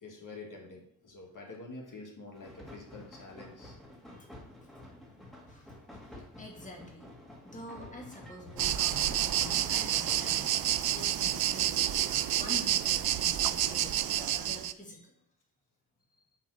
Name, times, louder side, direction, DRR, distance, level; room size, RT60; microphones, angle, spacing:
voice 1, 0.0-3.8, left 3 dB, 50° left, -1 dB, 2.0 m, -47 dB
sound 1, 2.3-10.9, left 1 dB, ahead, 2.1 m, -50 dB
voice 2, 5.5-7.1 7.4-10.6 10.9-15.1, left 1 dB, 20° left, -1 dB, 2.1 m, -47 dB
sound 2, 8.6-14.7, right 12 dB, 65° right, 0.5 m, -29 dB
7.6 x 3.6 x 6.3 m, 0.73 s
cardioid pair, 65°, 40 cm